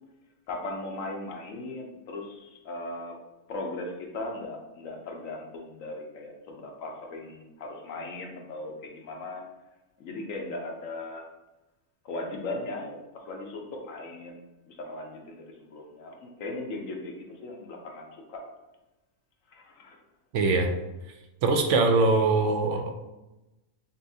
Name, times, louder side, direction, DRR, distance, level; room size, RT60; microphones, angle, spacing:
voice 1, 0.5-3.2 3.5-9.5 10.0-11.3 12.0-14.4 14.7-18.4 19.5-20.0, left 2 dB, 75° left, 1 dB, 1.1 m, -38 dB
voice 2, 20.3-20.7 21.4-22.9, right 3 dB, 70° right, 4 dB, 0.9 m, -22 dB
5.5 x 2.5 x 2.6 m, 1.0 s
omnidirectional pair, 1.4 m